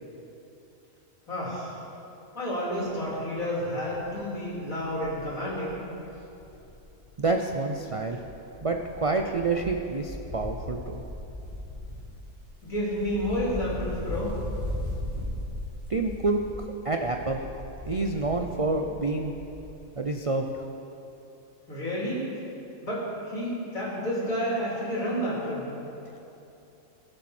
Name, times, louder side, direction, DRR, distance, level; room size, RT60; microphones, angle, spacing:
voice 1, 1.3-1.8 2.3-5.8 12.6-14.3 21.7-22.3 22.8-25.7, equal, 75° left, -7 dB, 3.8 m, -30 dB
Wind, 2.8-3.1 3.5-3.6 3.9-7.4 7.7-19.9 20.2-20.3, left 1 dB, 25° right, 3.6 m, -38 dB
voice 2, 7.2-8.2 8.6-11.0 15.9-17.4 17.9-19.3 20.0-20.5, right 3 dB, 65° right, 3 dB, 0.3 m, -28 dB
20.0 x 8.0 x 4.3 m, 3.0 s
omnidirectional pair, 1.5 m